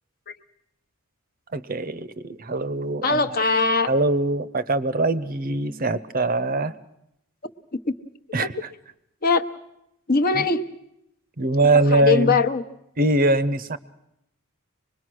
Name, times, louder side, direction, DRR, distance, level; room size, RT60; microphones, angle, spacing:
voice 1, 1.5-3.4 3.9-6.7 8.3-8.5 11.4-12.4 13.0-13.8, right 2 dB, 40° right, 15 dB, 0.7 m, -22 dB
voice 2, 3.0-3.9 7.4-7.5 8.4-8.5 9.2-9.5 10.1-10.6 11.9-12.6, left 4 dB, 45° left, 8 dB, 0.9 m, -21 dB
24.5 x 21.0 x 6.3 m, 0.81 s
head